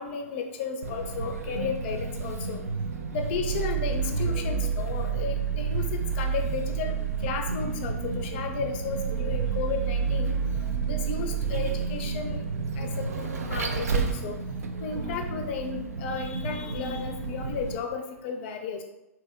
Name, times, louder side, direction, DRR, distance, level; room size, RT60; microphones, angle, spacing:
voice 1, 0.0-2.6 3.1-6.9 7.2-10.3 10.8-12.4 12.8-14.4 14.8-18.8, left 5 dB, 45° left, 6 dB, 0.4 m, -34 dB
Vehicle, 0.8-17.8, right 5 dB, 75° right, 0.4 m, -30 dB
2.8 x 2.1 x 3.4 m, 0.91 s
figure-of-eight pair, 105°, 8 cm